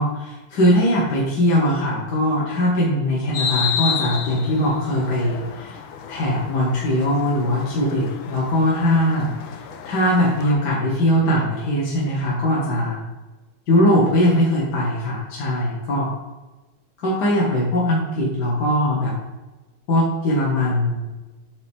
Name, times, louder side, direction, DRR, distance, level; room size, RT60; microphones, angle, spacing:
voice 1, 0.0-5.8 6.1-13.0 13.7-16.1 17.0-19.1 19.9-21.1, left 1 dB, 55° left, -5 dB, 1.8 m, -20 dB
sound 1, 3.3-10.5, left 7 dB, 80° left, 1.5 m, -31 dB
8.1 x 4.7 x 3.5 m, 1.1 s
omnidirectional pair, 2.4 m